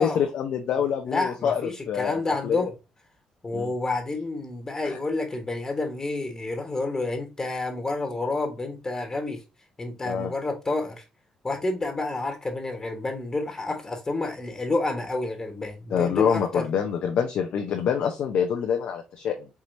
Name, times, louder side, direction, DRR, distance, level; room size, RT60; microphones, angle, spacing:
voice 1, 0.0-2.7 3.5-3.7 4.8-5.0 10.0-10.3 15.9-19.5, left 7 dB, 70° left, 0.6 m, -26 dB
voice 2, 1.0-2.7 3.4-9.4 9.8-11.0 11.4-16.7, left 2 dB, 30° left, 1.2 m, -29 dB
4.7 x 2.9 x 2.6 m
supercardioid pair, 65°, 2 cm